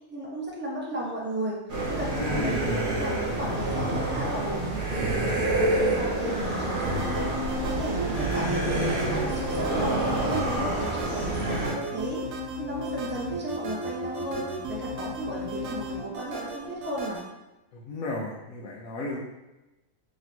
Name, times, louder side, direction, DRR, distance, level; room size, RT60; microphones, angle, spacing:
voice 1, 0.1-1.6 1.9-7.3 7.6-9.9 10.3-12.3 12.6-17.2, right 1 dB, 20° right, -3 dB, 0.3 m, -35 dB
sound 1, 1.7-11.7, right 2 dB, 40° right, 1.1 m, -27 dB
voice 2, 2.1-2.8 17.7-19.2, left 2 dB, 75° left, -3 dB, 1.0 m, -34 dB
sound 2, 6.8-17.2, equal, 90° right, 1.1 m, -34 dB
3.0 x 3.0 x 4.2 m, 0.99 s
omnidirectional pair, 1.4 m